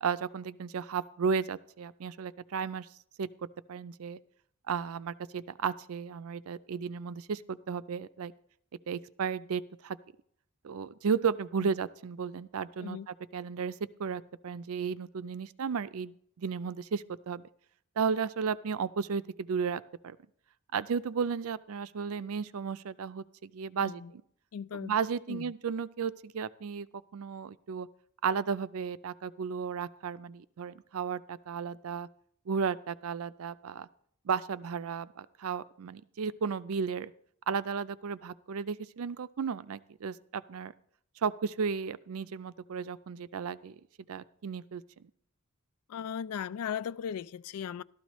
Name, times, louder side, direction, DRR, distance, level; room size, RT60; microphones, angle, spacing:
voice 1, 0.0-2.9 3.2-3.3 3.7-4.2 4.7-8.3 8.9-10.0 10.6-17.4 18.0-20.2 20.7-24.0 24.7-26.9 27.1-27.9 28.2-32.1 32.5-33.9 34.3-37.1 37.5-40.7 41.2-43.8 44.1-45.1, right 6 dB, 65° right, 0.4 m, -34 dB
voice 2, 23.8-24.1 24.5-25.0 25.3-25.5 45.9-47.8, left 8 dB, 75° left, 0.3 m, -37 dB
13.0 x 13.0 x 3.1 m
head